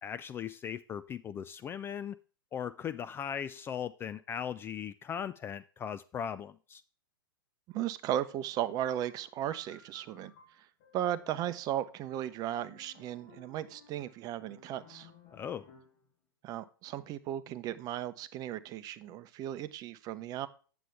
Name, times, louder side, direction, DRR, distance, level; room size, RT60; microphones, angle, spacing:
voice 1, 0.0-2.2 2.5-6.8 15.3-15.7, left 8 dB, 20° left, 0.3 m, -38 dB
voice 2, 7.7-10.3 10.9-15.1 16.4-20.5, right 11 dB, 30° right, 0.7 m, -36 dB
sound 1, 9.0-16.1, left 4 dB, 50° left, 3.5 m, -59 dB
9.1 x 7.0 x 3.4 m
hypercardioid pair, 105°, 12 cm